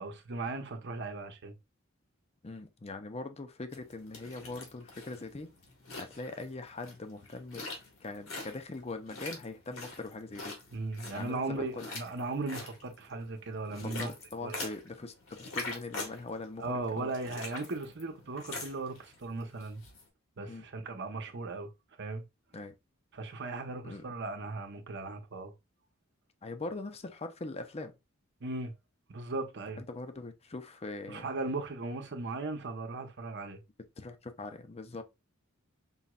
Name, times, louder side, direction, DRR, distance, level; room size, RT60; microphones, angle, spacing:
voice 1, 0.0-1.5 10.7-14.1 14.4-14.7 16.6-19.8 20.4-21.7 22.0-22.2 23.1-25.5 28.4-28.7 29.1-29.8 31.1-33.6, right 3 dB, 60° right, 0.9 m, -37 dB
voice 2, 2.4-5.5 6.0-7.7 8.0-10.6 11.1-11.9 13.7-15.1 15.4-17.1 20.5-20.7 22.5-22.7 23.8-24.0 26.4-28.0 29.8-31.3 34.0-35.0, left 3 dB, 30° left, 0.6 m, -41 dB
sound 1, 3.7-20.0, left 3 dB, 80° left, 1.8 m, -45 dB
5.5 x 3.1 x 2.3 m
head